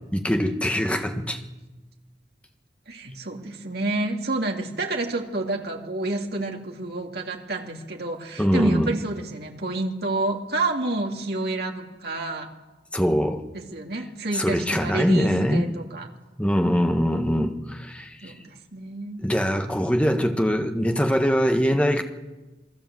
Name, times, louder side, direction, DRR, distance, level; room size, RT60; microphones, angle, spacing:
voice 1, 0.1-1.4 8.4-8.9 12.9-13.4 14.3-15.7 16.4-18.3 19.2-22.0, equal, 5° left, 1.6 m, -22 dB
voice 2, 2.9-12.5 13.5-16.1 18.2-19.2, right 2 dB, 60° right, 2.8 m, -29 dB
27.5 x 20.5 x 7.8 m
head